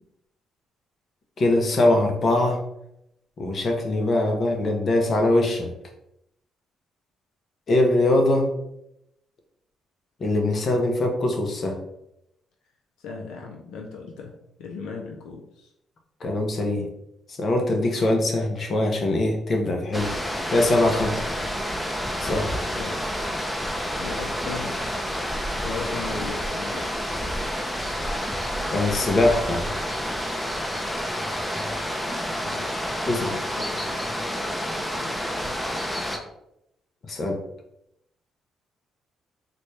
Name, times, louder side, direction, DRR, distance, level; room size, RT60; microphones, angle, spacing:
voice 1, 1.4-2.6 3.4-5.7 7.7-8.5 10.2-11.8 16.2-16.9 17.3-20.1 20.5-21.1 22.2-22.5 28.7-29.7 33.1-33.4 37.1-37.4, left 2 dB, 45° left, 3 dB, 0.7 m, -22 dB
voice 2, 13.0-15.7 21.0-21.1 22.7-23.0 24.0-24.8 25.5-26.9 32.4-33.9 34.9-35.6, left 4 dB, 90° left, 1 dB, 0.5 m, -38 dB
sound 1, 19.9-36.2, equal, 5° left, 0.5 m, -29 dB
4.0 x 2.3 x 3.2 m, 0.81 s
cardioid pair, 90°, 0 cm